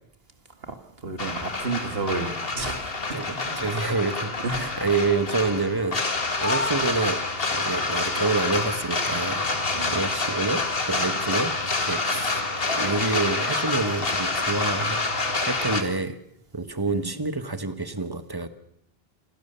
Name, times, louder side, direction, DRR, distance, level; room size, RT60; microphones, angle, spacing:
voice 1, 1.0-3.6 4.4-4.6 9.7-10.0 16.9-17.1, right 3 dB, 70° right, 7 dB, 2.3 m, -31 dB
sound 1, 1.2-15.8, left 3 dB, 65° left, 2.0 m, -27 dB
voice 2, 3.1-7.2 7.5-9.4 9.9-10.6 10.9-11.5 11.8-12.4 12.8-15.0 15.4-16.2 16.5-18.5, right 3 dB, 20° right, 10 dB, 1.3 m, -27 dB
26.5 x 17.0 x 6.8 m, 0.77 s
omnidirectional pair, 1.0 m